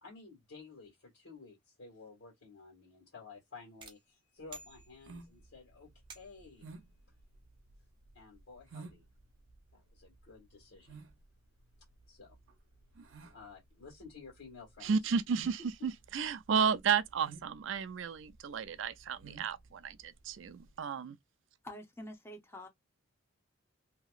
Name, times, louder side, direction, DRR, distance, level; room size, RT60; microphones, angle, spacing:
voice 1, 0.0-5.9 6.1-6.6 8.1-9.0 9.7-11.0 12.1-12.4 13.3-15.2, left 4 dB, 70° left, 1.8 m, -53 dB
Bicycle Bell, 3.8-5.4 6.1-6.6, right 4 dB, 25° right, 0.7 m, -53 dB
sound 1, 4.4-20.8, right 4 dB, 90° right, 0.8 m, -54 dB
voice 2, 14.8-21.2, right 6 dB, 70° right, 0.4 m, -33 dB
voice 3, 21.6-22.7, left 1 dB, 10° left, 0.8 m, -46 dB
2.9 x 2.8 x 2.4 m
head